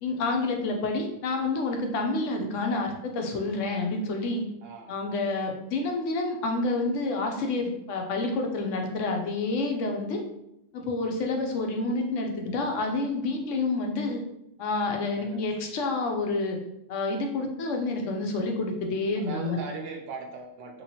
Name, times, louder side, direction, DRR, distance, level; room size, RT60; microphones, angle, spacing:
voice 1, 0.0-4.4 4.9-10.2 10.7-14.2 14.6-16.6 16.9-19.6, left 3 dB, 80° left, 3 dB, 1.0 m, -28 dB
voice 2, 4.6-4.9 15.2-15.5 19.2-20.8, right 4 dB, 85° right, 2 dB, 1.0 m, -39 dB
3.0 x 3.0 x 2.8 m, 0.84 s
omnidirectional pair, 1.3 m